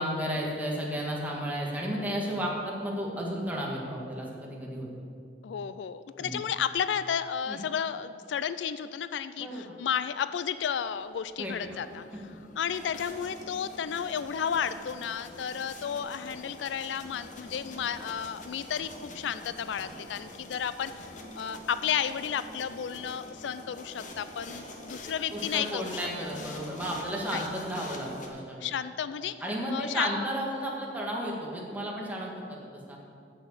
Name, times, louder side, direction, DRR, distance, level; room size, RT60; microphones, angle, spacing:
voice 1, 0.0-4.9 6.2-6.3 7.5-7.6 9.4-9.6 11.4-11.8 25.3-28.7 29.4-33.0, equal, 10° right, -3 dB, 1.8 m, -33 dB
voice 2, 5.4-26.0 27.2-27.4 28.6-29.3 29.7-30.1, left 8 dB, 90° left, 13 dB, 0.4 m, -32 dB
sound 1, 11.4-28.3, left 1 dB, 45° left, 1.3 m, -45 dB
8.2 x 7.4 x 8.1 m, 2.4 s
head